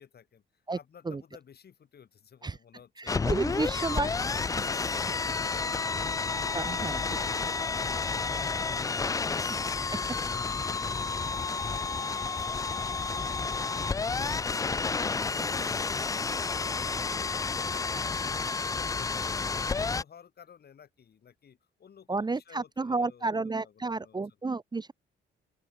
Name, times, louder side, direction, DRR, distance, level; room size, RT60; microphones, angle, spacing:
voice 1, 0.0-4.3 4.6-6.1 6.5-9.3 9.6-14.7 15.0-17.3 17.7-19.4 19.7-24.2, left 8 dB, 55° left, 7.4 m, -54 dB
voice 2, 3.0-4.1 6.5-7.0 9.5-9.6 22.1-24.9, right 3 dB, 20° right, 0.9 m, -31 dB
sound 1, 3.1-20.0, left 4 dB, 15° left, 0.3 m, -30 dB
open air
cardioid pair, 90°, 20 cm